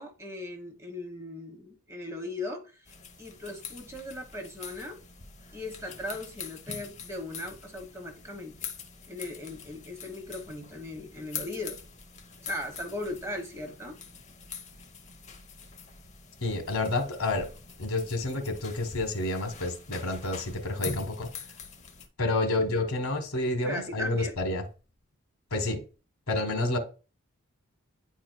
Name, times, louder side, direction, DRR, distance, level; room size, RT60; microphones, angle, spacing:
voice 1, 0.0-2.9 3.2-5.0 5.5-8.6 9.1-11.8 12.4-14.0 23.6-24.4, left 1 dB, 15° right, 1.1 m, -38 dB
sound 1, 2.9-22.1, left 5 dB, 30° left, 0.8 m, -44 dB
voice 2, 16.4-17.5 17.8-21.3 22.2-24.6 25.5-25.8 26.3-26.8, left 2 dB, 75° left, 1.5 m, -29 dB
10.0 x 4.4 x 2.2 m
head